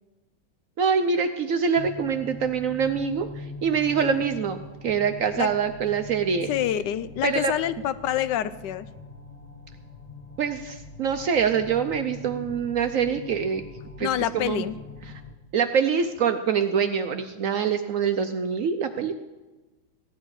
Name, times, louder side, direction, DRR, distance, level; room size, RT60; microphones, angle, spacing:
voice 1, 0.8-6.5 7.2-7.5 10.4-13.6 14.0-14.1 14.3-14.6 15.1-15.2 15.5-19.1, right 6 dB, 65° right, 8 dB, 0.8 m, -25 dB
sound 1, 1.8-15.3, left 3 dB, 25° left, 1.0 m, -42 dB
voice 2, 6.5-8.9 14.0-14.7, left 11 dB, 75° left, 14 dB, 1.2 m, -27 dB
16.0 x 10.5 x 4.8 m, 1.2 s
omnidirectional pair, 1.9 m